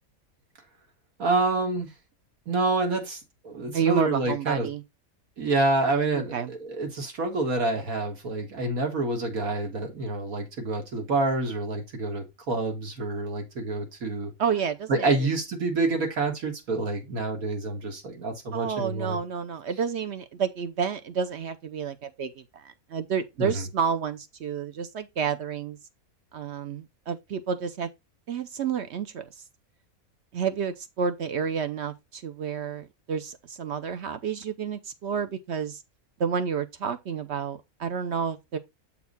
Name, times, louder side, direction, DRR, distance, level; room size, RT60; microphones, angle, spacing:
voice 1, 1.2-1.9 2.5-4.7 5.4-14.3 14.9-19.2 23.4-23.6, right 3 dB, 75° right, 2.2 m, -27 dB
voice 2, 3.7-4.8 6.1-6.5 14.4-15.3 18.5-25.8 26.3-27.9 28.3-29.3 30.3-35.8 36.2-38.6, right 7 dB, 60° right, 0.8 m, -30 dB
7.2 x 4.3 x 4.0 m
omnidirectional pair, 1.5 m